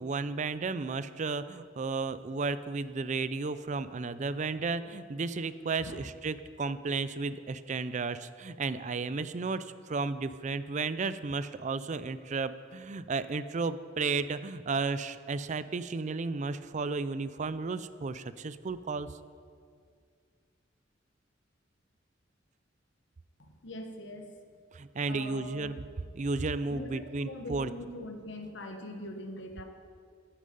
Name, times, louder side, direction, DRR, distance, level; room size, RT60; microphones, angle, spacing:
voice 1, 0.0-19.1 24.7-25.8 26.1-27.7, right 4 dB, 40° right, 13 dB, 0.5 m, -33 dB
voice 2, 23.4-24.3 25.1-25.7 26.7-29.6, left 1 dB, 65° left, 4 dB, 1.3 m, -42 dB
14.5 x 10.0 x 5.3 m, 2.1 s
head